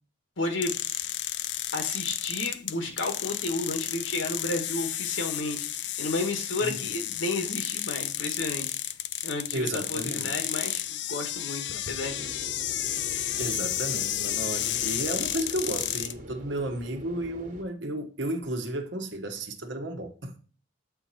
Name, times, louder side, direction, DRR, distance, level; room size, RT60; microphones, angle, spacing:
voice 1, 0.4-0.8 1.7-8.7 9.2-12.4, left 2 dB, 85° left, 1.9 m, -32 dB
sound 1, 0.6-16.1, left 13 dB, 60° left, 0.4 m, -32 dB
voice 2, 9.5-10.3 13.4-20.4, right 1 dB, 70° right, 1.1 m, -33 dB
sound 2, 12.0-17.6, equal, 40° right, 1.3 m, -44 dB
7.9 x 4.3 x 4.3 m
head